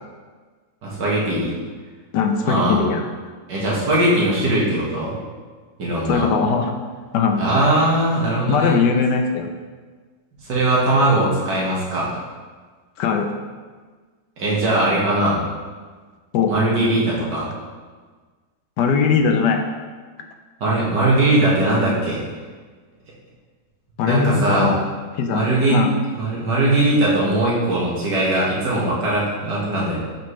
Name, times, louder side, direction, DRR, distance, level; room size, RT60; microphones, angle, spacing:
voice 1, 0.8-1.5 2.4-2.8 3.5-5.1 5.8-6.2 7.4-8.7 10.4-12.1 14.4-15.4 16.5-17.5 20.6-22.2 24.0-24.7 25.3-25.8 26.2-30.0, right 1 dB, 90° right, -6 dB, 2.3 m, -20 dB
voice 2, 2.1-3.0 6.1-6.7 7.1-7.4 8.5-9.5 13.0-13.3 16.3-16.5 18.8-19.6 24.0-24.8 25.2-25.4 25.7-25.9, left 5 dB, 85° left, 5 dB, 1.3 m, -19 dB
7.5 x 5.6 x 3.2 m, 1.5 s
omnidirectional pair, 1.8 m